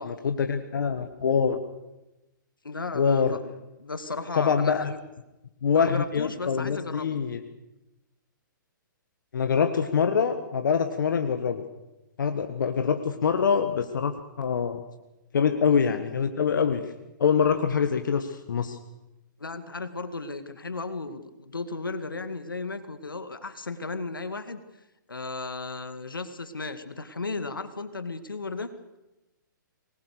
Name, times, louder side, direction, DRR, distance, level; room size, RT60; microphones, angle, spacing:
voice 1, 0.0-1.6 2.9-3.3 4.4-4.9 5.6-7.4 9.3-11.6 12.2-14.1 14.4-14.8 15.3-16.8 17.2-18.8, left 6 dB, 70° left, 7 dB, 1.6 m, -24 dB
voice 2, 2.6-3.4 3.8-5.0 5.7-7.2 19.4-24.6 25.1-28.7, left 3 dB, 90° left, 10 dB, 2.1 m, -35 dB
24.0 x 20.0 x 6.6 m, 0.98 s
hypercardioid pair, 125°, 11 cm